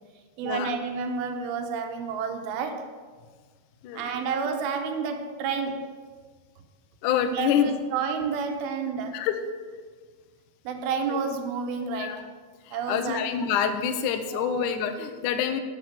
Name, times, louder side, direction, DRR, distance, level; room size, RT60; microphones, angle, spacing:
voice 1, 0.4-2.9 3.9-5.9 7.3-9.2 10.7-12.2 12.7-13.6 14.3-14.7, right 5 dB, 80° right, 6 dB, 2.6 m, -30 dB
voice 2, 7.0-7.7 9.1-9.4 12.0-12.2 12.7-15.6, left 8 dB, 80° left, 7 dB, 1.8 m, -26 dB
9.4 x 6.0 x 7.5 m, 1.5 s
omnidirectional pair, 4.4 m